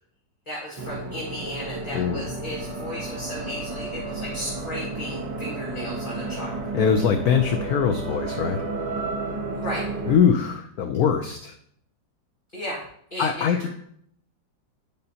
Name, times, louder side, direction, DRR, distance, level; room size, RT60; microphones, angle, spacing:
voice 1, 0.5-6.8 9.5-9.9 12.5-12.8 13.1-13.7, equal, 25° left, -7 dB, 1.8 m, -35 dB
sound 1, 0.8-10.2, right 3 dB, 70° right, 1.7 m, -32 dB
voice 2, 6.7-8.6 10.1-11.5 13.2-13.7, left 7 dB, 70° left, 6 dB, 0.9 m, -22 dB
10.5 x 5.3 x 2.8 m, 0.68 s
omnidirectional pair, 2.0 m